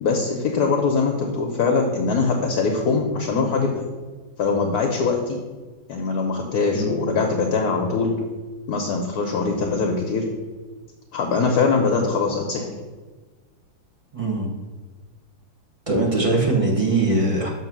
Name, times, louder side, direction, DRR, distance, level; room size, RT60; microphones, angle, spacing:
voice 1, 0.0-3.8 4.4-5.4 5.9-8.1 8.7-10.3 11.1-12.8, left 4 dB, 65° left, 2 dB, 1.0 m, -22 dB
voice 2, 14.1-14.5 15.9-17.5, right 2 dB, 25° right, -2 dB, 0.7 m, -21 dB
7.2 x 3.1 x 6.0 m, 1.3 s
omnidirectional pair, 2.2 m